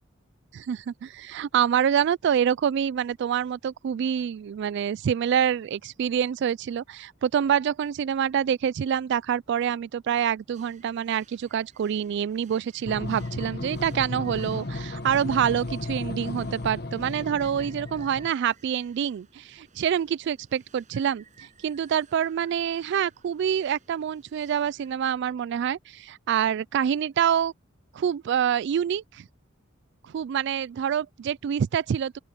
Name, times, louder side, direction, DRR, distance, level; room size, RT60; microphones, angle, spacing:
voice 1, 0.5-21.2 21.6-27.5 27.9-29.3 30.0-32.2, right 8 dB, 60° right, 0.3 m, -26 dB
sound 1, 10.5-24.9, right 5 dB, 40° right, 6.8 m, -58 dB
sound 2, 12.9-18.3, left 2 dB, 55° left, 1.3 m, -34 dB
open air
head